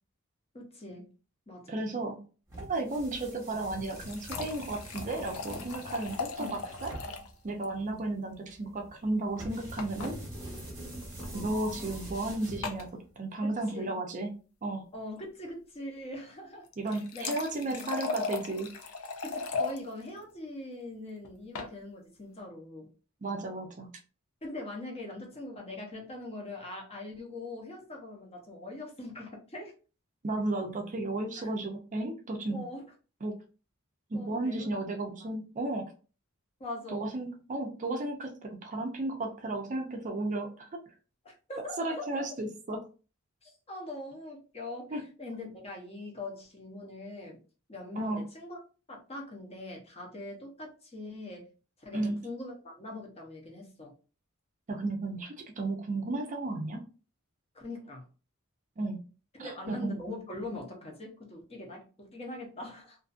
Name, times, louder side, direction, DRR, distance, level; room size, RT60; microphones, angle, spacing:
voice 1, 0.5-1.1 1.5-1.8 6.4-6.6 13.4-14.0 14.9-17.3 17.6-17.9 19.2-22.9 24.4-29.7 31.4-31.5 32.5-32.8 34.1-34.8 36.6-37.1 41.2-42.2 43.4-47.4 47.7-48.6 48.9-51.4 51.8-53.9 57.5-58.0 59.4-63.0, left 2 dB, 30° left, 0 dB, 0.8 m, -42 dB
voice 2, 1.7-2.2 2.6-6.9 7.4-10.1 11.3-12.9 13.2-14.3 14.6-14.8 16.8-18.7 23.2-23.9 30.2-32.6 33.2-33.4 34.1-35.9 36.9-40.8 41.8-42.8 44.9-45.0 48.0-48.2 51.9-52.2 54.7-56.8 58.8-59.0 59.4-60.0, right 2 dB, 35° right, 3 dB, 0.4 m, -34 dB
sound 1, 2.5-13.1, right 1 dB, 15° right, 1.0 m, -44 dB
sound 2, 3.6-7.3 7.6-7.7 8.0-8.1 9.8-10.1 11.1-11.3 12.6-12.9 16.7-19.8 21.2-21.7, left 4 dB, 80° left, 0.5 m, -37 dB
2.5 x 2.4 x 2.4 m, 0.36 s
head